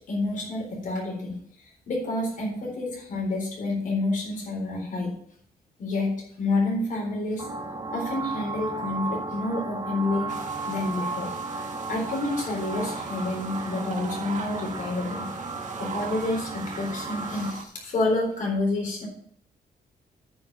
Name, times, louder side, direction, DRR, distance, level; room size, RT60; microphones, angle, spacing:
voice 1, 0.1-5.1 5.8-7.5 7.9-10.3 10.7-11.3 11.9-15.3 15.8-19.1, left 2 dB, 55° left, -2 dB, 4.0 m, -29 dB
sound 1, 7.4-17.5, right 3 dB, 30° right, 1.2 m, -34 dB
sound 2, 10.3-17.6, right 6 dB, 55° right, 1.4 m, -40 dB
9.1 x 5.4 x 7.1 m, 0.65 s
wide cardioid pair, 150°, 15 cm